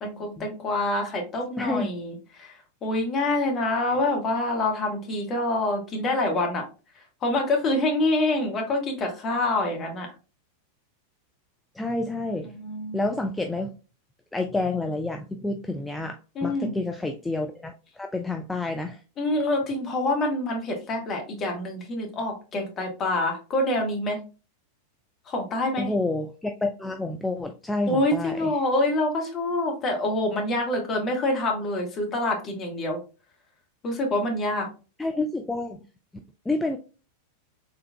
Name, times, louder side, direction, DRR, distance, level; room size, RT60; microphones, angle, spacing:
voice 1, 0.0-6.6 7.2-10.1 12.5-13.1 16.3-16.8 19.2-24.2 25.3-25.9 27.9-33.0 33.8-34.7, left 2 dB, 30° left, 2 dB, 1.2 m, -26 dB
voice 2, 1.6-1.9 11.7-12.5 12.9-13.7 14.3-19.0 25.8-28.5 35.0-35.8 36.5-36.8, left 2 dB, 10° left, 5 dB, 0.3 m, -29 dB
4.3 x 3.7 x 2.2 m, 0.34 s
figure-of-eight pair, 90°, 0 cm